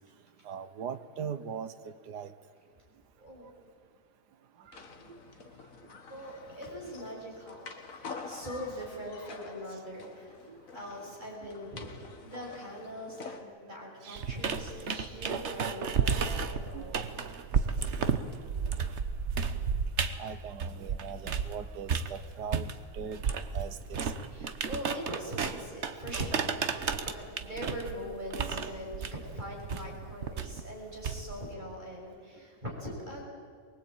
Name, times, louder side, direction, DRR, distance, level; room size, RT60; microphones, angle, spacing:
voice 1, 0.4-2.3 5.1-5.2 10.5-10.6 14.0-14.3 16.7-17.3 18.6-18.7 20.2-23.2 23.5-24.3 28.4-28.6, right 7 dB, 80° right, 12 dB, 1.6 m, -41 dB
voice 2, 3.1-3.5 6.1-10.4 10.7-17.0 24.3-33.2, equal, 25° right, -2 dB, 6.5 m, -42 dB
sound 1, 4.7-13.4, left 4 dB, 55° left, 2.0 m, -47 dB
sound 2, 14.2-21.6 21.9-31.5, right 6 dB, 45° right, 1.2 m, -32 dB
23.5 x 21.0 x 8.9 m, 2.1 s
omnidirectional pair, 1.8 m